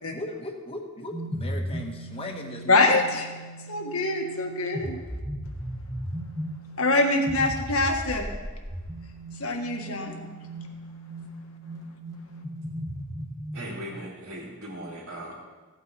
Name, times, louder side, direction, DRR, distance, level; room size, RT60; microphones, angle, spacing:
voice 1, 0.1-3.0, left 1 dB, 25° left, 2 dB, 1.3 m, -37 dB
sound 1, 1.1-13.9, right 1 dB, 15° right, 1.4 m, -37 dB
voice 2, 2.7-3.2 3.7-5.0 6.8-8.3 9.4-10.2, left 2 dB, 70° left, 3 dB, 1.6 m, -24 dB
voice 3, 13.5-15.3, equal, 75° right, -8 dB, 2.8 m, -38 dB
16.0 x 8.8 x 4.1 m, 1.3 s
head